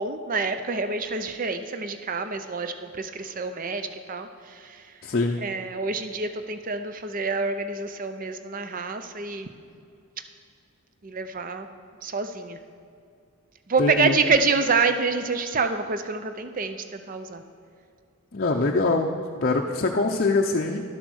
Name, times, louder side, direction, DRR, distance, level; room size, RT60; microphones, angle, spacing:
voice 1, 0.0-4.3 5.4-9.5 11.0-11.7 12.0-12.6 13.7-17.4, right 4 dB, 40° right, 9 dB, 0.5 m, -27 dB
voice 2, 5.0-5.4 13.8-14.2 18.3-19.1 19.4-20.8, left 3 dB, 40° left, 1 dB, 0.6 m, -23 dB
11.5 x 7.9 x 6.3 m, 2.5 s
head